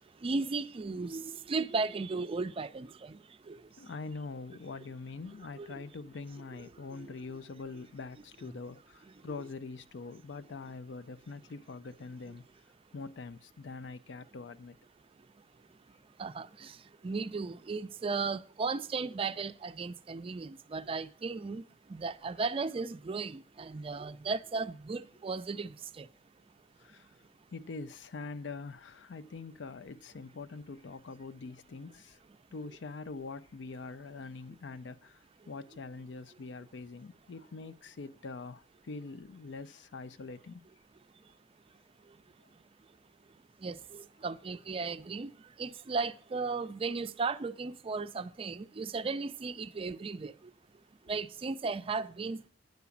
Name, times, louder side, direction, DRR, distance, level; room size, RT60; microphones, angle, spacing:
voice 1, 0.2-3.2 3.5-3.6 5.6-5.7 7.0-7.1 16.2-16.7 17.0-21.6 21.9-26.1 43.6-45.3 45.6-50.3 51.1-52.5, right 4 dB, 30° right, 0.4 m, -35 dB
voice 2, 3.8-12.4 12.9-14.8 26.8-27.1 27.5-32.2 32.5-40.7, left 4 dB, 80° left, 0.5 m, -44 dB
9.3 x 4.9 x 7.0 m
head